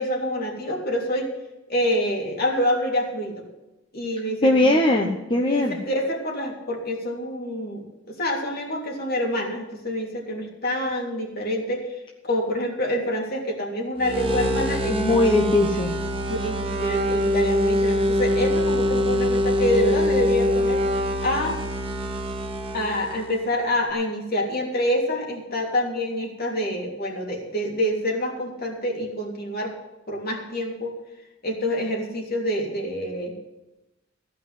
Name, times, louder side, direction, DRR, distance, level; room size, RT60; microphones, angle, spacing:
voice 1, 0.0-1.3 1.7-3.4 3.9-4.8 5.5-15.2 16.3-20.8 21.2-21.6 22.7-29.7 30.1-30.9 31.4-33.3, left 1 dB, 55° left, 0 dB, 3.1 m, -27 dB
voice 2, 4.4-5.8 14.9-15.9, left 2 dB, 25° left, 1 dB, 1.0 m, -20 dB
sound 1, 14.0-23.5, left 1 dB, 30° right, 1.5 m, -24 dB
15.5 x 5.6 x 9.5 m, 1.0 s
head